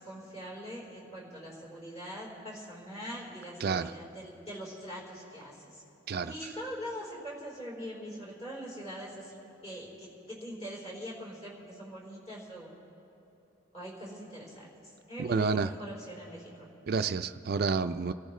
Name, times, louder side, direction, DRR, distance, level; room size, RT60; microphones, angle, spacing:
voice 1, 0.0-5.8 6.2-12.7 13.7-14.7 15.1-16.7, equal, 30° left, -5 dB, 4.0 m, -42 dB
voice 2, 3.6-3.9 6.1-6.3 15.2-15.7 16.9-18.1, right 5 dB, 50° right, 9 dB, 0.4 m, -29 dB
27.5 x 14.0 x 3.2 m, 2.9 s
head